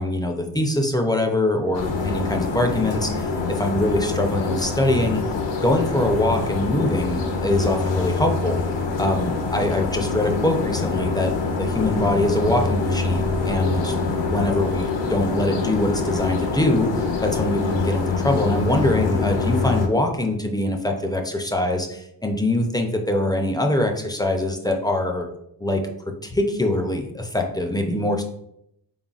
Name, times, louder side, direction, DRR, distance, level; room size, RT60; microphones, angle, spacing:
voice 1, 0.0-5.2 5.6-8.6 9.0-13.8 14.3-16.9 17.2-25.3 25.6-25.8 26.2-28.2, left 1 dB, 10° left, 3 dB, 0.4 m, -23 dB
sound 1, 1.7-19.9, left 4 dB, 70° left, 0.8 m, -25 dB
3.9 x 3.6 x 2.4 m, 0.76 s
wide cardioid pair, 100°, 45 cm